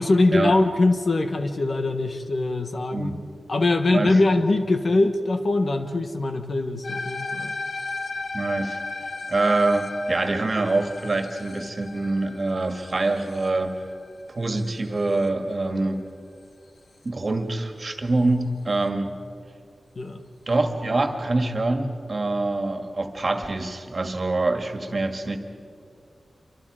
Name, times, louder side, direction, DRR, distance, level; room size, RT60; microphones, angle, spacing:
voice 1, 0.0-3.1 3.5-7.5 20.0-20.2, left 2 dB, 50° left, 7 dB, 1.3 m, -22 dB
sound 1, 6.8-15.3, left 3 dB, 75° left, 1.4 m, -35 dB
voice 2, 8.3-8.8 9.3-13.8 14.3-16.0 17.0-19.1 20.5-25.4, right 2 dB, 40° right, 6 dB, 2.0 m, -25 dB
27.5 x 25.0 x 5.0 m, 2.4 s
wide cardioid pair, 125°, 0 cm